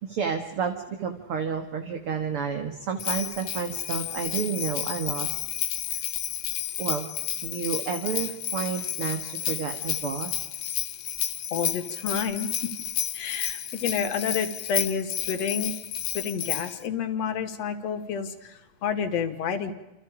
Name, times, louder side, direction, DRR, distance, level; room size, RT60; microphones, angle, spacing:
voice 1, 0.0-5.4 5.9-6.0 6.8-7.1 7.4-10.3, right 6 dB, 50° right, 5 dB, 2.4 m, -30 dB
Bell, 3.0-16.8, left 11 dB, 80° left, 2.6 m, -31 dB
voice 2, 11.5-12.7 13.1-15.8 16.1-19.7, left 6 dB, 60° left, 7 dB, 2.9 m, -29 dB
29.0 x 28.0 x 5.1 m, 1.0 s
omnidirectional pair, 3.5 m